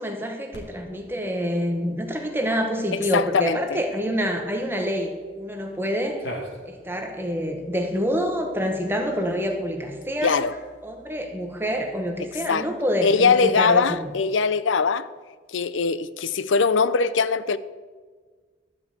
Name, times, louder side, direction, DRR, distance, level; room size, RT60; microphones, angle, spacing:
voice 1, 0.0-6.2 6.7-10.4 10.8-14.0, equal, 10° right, 1.1 m, -27 dB
Cat, 0.5-14.2, equal, 70° left, 2.4 m, -47 dB
voice 2, 2.9-3.6 10.2-10.5 12.5-12.7 13.0-15.1 15.5-17.6, left 5 dB, 90° left, 0.5 m, -21 dB
12.5 x 5.4 x 8.2 m
head